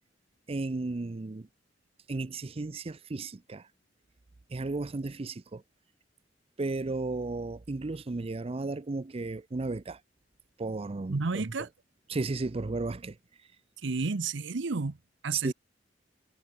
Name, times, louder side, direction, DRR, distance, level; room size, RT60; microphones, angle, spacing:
voice 1, 0.5-1.5 2.1-3.7 4.5-5.6 6.6-10.0 10.6-11.4 12.1-13.2 15.3-15.5, right 3 dB, 30° right, 0.5 m, -34 dB
voice 2, 11.1-11.7 13.8-15.0 15.2-15.5, right 4 dB, 80° right, 0.8 m, -31 dB
head